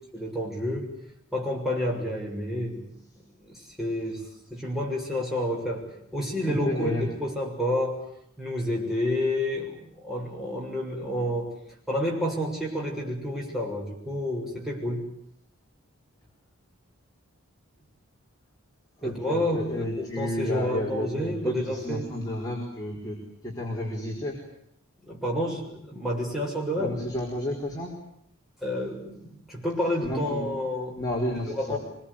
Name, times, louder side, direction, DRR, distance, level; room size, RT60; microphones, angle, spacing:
voice 1, 0.1-0.9 1.3-2.9 3.4-4.3 4.5-8.0 8.4-11.5 11.9-15.1 19.0-22.1 25.0-27.0 28.6-31.0 31.5-31.8, left 1 dB, ahead, -3 dB, 7.1 m, -29 dB
voice 2, 6.4-7.1 19.0-23.2 23.4-24.4 26.7-27.9 30.0-30.5 31.0-31.8, left 1 dB, 15° left, -3 dB, 4.7 m, -31 dB
26.0 x 22.0 x 10.0 m, 0.73 s
head